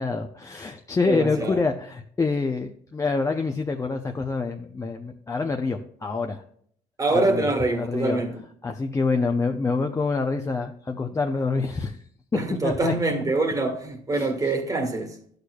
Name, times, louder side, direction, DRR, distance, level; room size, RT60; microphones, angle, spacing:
voice 1, 0.0-6.4 7.3-7.5 7.8-8.2 8.6-12.0 12.3-13.0 14.1-14.5, left 4 dB, 20° left, 0.6 m, -26 dB
voice 2, 1.0-1.6 7.0-8.4 12.3-15.2, right 2 dB, 20° right, 1.5 m, -25 dB
11.5 x 6.6 x 2.3 m
cardioid pair, 110°, 17 cm